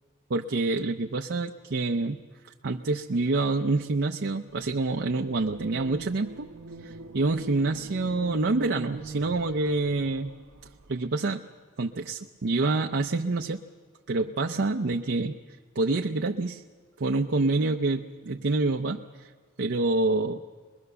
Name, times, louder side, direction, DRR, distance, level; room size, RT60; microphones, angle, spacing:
voice 1, 0.3-2.2 2.6-6.5 6.8-10.3 10.9-11.4 11.8-13.6 14.1-15.4 15.8-16.6 17.0-19.3 19.6-20.4, right 3 dB, 55° right, 3 dB, 0.6 m, -27 dB
sound 1, 5.1-11.1, right 3 dB, 85° right, 1.0 m, -43 dB
24.0 x 21.5 x 6.9 m, 1.5 s
head